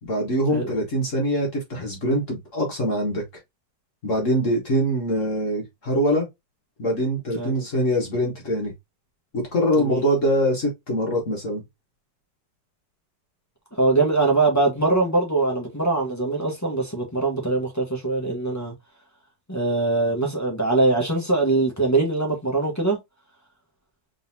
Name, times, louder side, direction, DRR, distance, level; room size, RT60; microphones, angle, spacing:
voice 1, 0.0-3.2 4.0-6.3 6.8-8.7 9.3-11.6, equal, 45° left, 1.6 m, -23 dB
voice 2, 13.7-18.7 19.5-23.0, right 3 dB, 10° left, 1.0 m, -22 dB
3.9 x 3.7 x 2.7 m
omnidirectional pair, 2.0 m